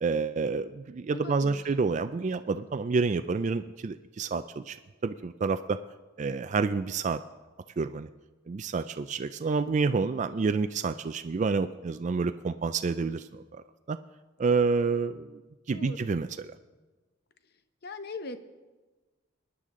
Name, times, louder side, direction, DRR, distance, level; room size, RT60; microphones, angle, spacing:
voice 1, 0.0-4.8 5.0-5.8 6.2-7.2 7.8-8.1 8.5-14.0 14.4-15.4 15.7-16.3, right 4 dB, 40° right, 10 dB, 0.3 m, -28 dB
voice 2, 1.1-1.6 15.7-16.1 17.8-18.4, left 3 dB, 55° left, 10 dB, 0.8 m, -40 dB
23.0 x 10.0 x 3.7 m, 1.2 s
head